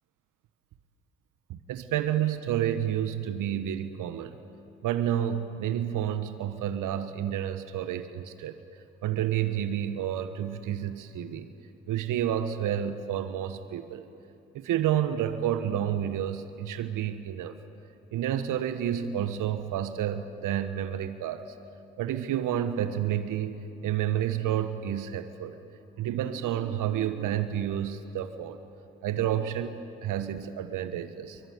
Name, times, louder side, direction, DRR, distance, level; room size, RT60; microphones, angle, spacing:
voice 1, 1.5-4.4 4.8-8.6 9.0-11.5 11.9-14.1 14.5-17.5 18.1-21.5 22.0-25.6 26.0-28.6 29.0-31.4, right 10 dB, 65° right, 11 dB, 1.2 m, -30 dB
25.0 x 23.0 x 9.6 m, 2.8 s
hypercardioid pair, 45°, 33 cm